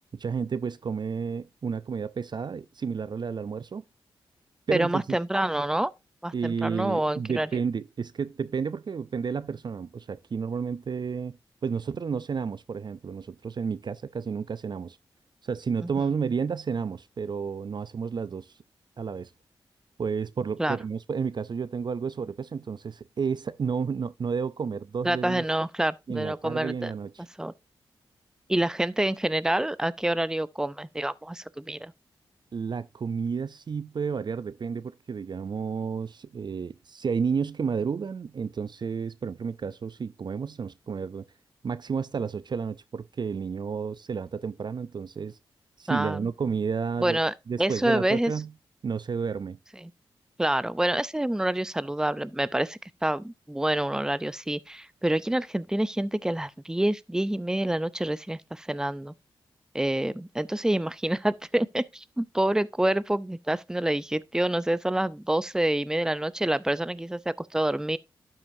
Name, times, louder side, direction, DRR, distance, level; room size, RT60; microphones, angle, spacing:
voice 1, 0.1-3.8 4.7-5.2 6.3-11.4 11.6-15.0 15.4-18.5 19.0-19.3 20.0-25.4 26.1-27.2 32.5-41.3 41.6-45.4 45.8-47.2 47.5-48.5 48.8-49.6, right 6 dB, 50° right, 0.4 m, -31 dB
voice 2, 4.7-5.9 6.2-7.5 15.8-16.1 20.6-20.8 25.0-26.9 27.4-27.5 28.5-31.9 45.9-46.3 47.0-48.3 49.8-49.9 50.4-59.1 59.7-68.0, right 1 dB, 5° right, 0.6 m, -27 dB
12.0 x 5.6 x 2.7 m
supercardioid pair, 45°, 10 cm